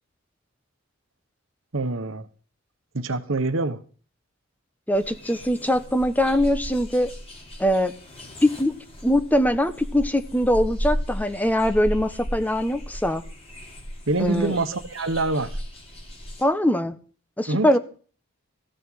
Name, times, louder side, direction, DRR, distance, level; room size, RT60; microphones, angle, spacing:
voice 1, 1.7-2.3 2.9-3.8 14.1-15.6 17.5-17.8, right 2 dB, 75° right, 1.3 m, -25 dB
sound 1, 4.9-16.4, equal, 30° left, 4.1 m, -35 dB
voice 2, 4.9-7.1 7.6-7.9 8.4-8.7 9.0-13.2 14.2-14.6 16.4-16.9 17.4-17.8, left 1 dB, 10° left, 1.2 m, -22 dB
16.5 x 6.7 x 9.4 m
head